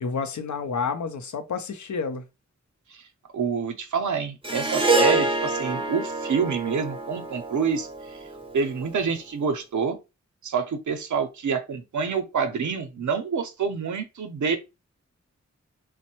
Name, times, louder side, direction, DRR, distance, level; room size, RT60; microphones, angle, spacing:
voice 1, 0.0-2.3, left 5 dB, 80° left, 0.5 m, -29 dB
voice 2, 3.3-8.2 8.5-10.0 10.4-14.6, right 5 dB, 85° right, 0.6 m, -27 dB
Harp, 4.4-8.9, right 2 dB, 20° right, 0.5 m, -26 dB
3.1 x 2.0 x 2.9 m
wide cardioid pair, 95°, 29 cm